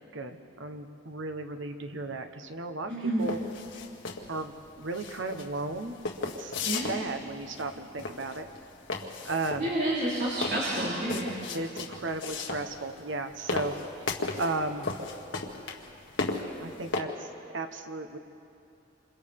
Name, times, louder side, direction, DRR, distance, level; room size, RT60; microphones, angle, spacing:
voice 1, 0.1-3.4 4.3-6.0 6.4-6.5 6.9-8.5 9.2-9.7 11.5-13.7 14.4-14.9 16.6-17.3 17.5-18.2, right 2 dB, 80° right, 6 dB, 1.3 m, -35 dB
voice 2, 2.9-3.3 6.6-7.1 9.6-11.3, right 1 dB, 60° right, -9 dB, 4.0 m, -29 dB
sound 1, 3.2-17.0, left 3 dB, 80° left, 1.8 m, -36 dB
27.5 x 27.5 x 3.7 m, 2.7 s
head